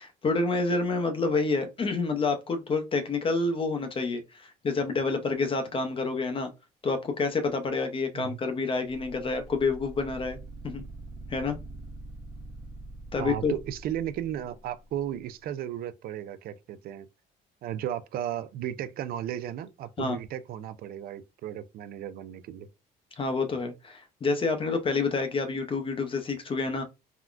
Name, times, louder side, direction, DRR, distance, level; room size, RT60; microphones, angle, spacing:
voice 1, 0.0-6.5 6.8-10.4 10.6-10.9 11.3-11.6 13.1-13.5 20.0-20.2 23.2-26.8, left 3 dB, 30° left, 0.6 m, -28 dB
sound 1, 8.9-15.0, right 2 dB, 25° right, 0.7 m, -44 dB
voice 2, 13.2-17.1 17.6-22.7, right 11 dB, 60° right, 0.4 m, -35 dB
3.6 x 2.1 x 2.4 m
cardioid pair, 110°, 17 cm